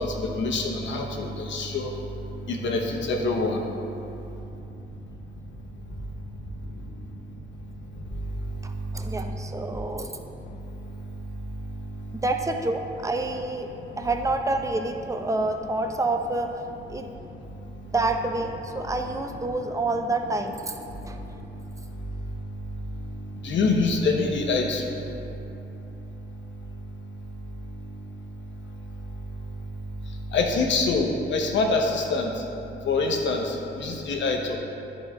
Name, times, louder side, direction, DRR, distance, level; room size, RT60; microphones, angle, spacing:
voice 1, 0.0-1.9 2.5-3.6 23.4-25.0 30.3-32.4 32.8-34.5, left 3 dB, 80° left, 1 dB, 0.9 m, -25 dB
voice 2, 8.6-10.2 12.1-13.7 14.0-16.6 16.9-17.1 17.9-20.8 21.1-21.2, right 2 dB, 15° right, 5 dB, 0.6 m, -28 dB
11.0 x 4.1 x 3.6 m, 2.8 s
cardioid pair, 75°, 19 cm